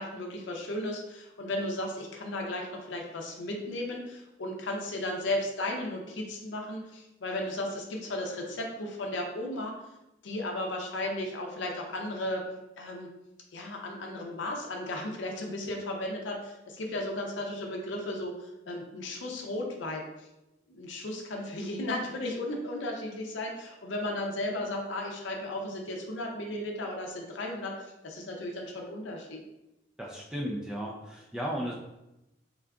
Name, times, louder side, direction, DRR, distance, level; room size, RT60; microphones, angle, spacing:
voice 1, 0.0-9.7 10.2-12.4 12.8-13.1 13.5-20.3 20.7-29.4, left 1 dB, 75° left, 1 dB, 0.6 m, -35 dB
voice 2, 30.0-31.7, equal, 5° right, -3 dB, 0.3 m, -35 dB
3.7 x 2.4 x 3.4 m, 0.93 s
head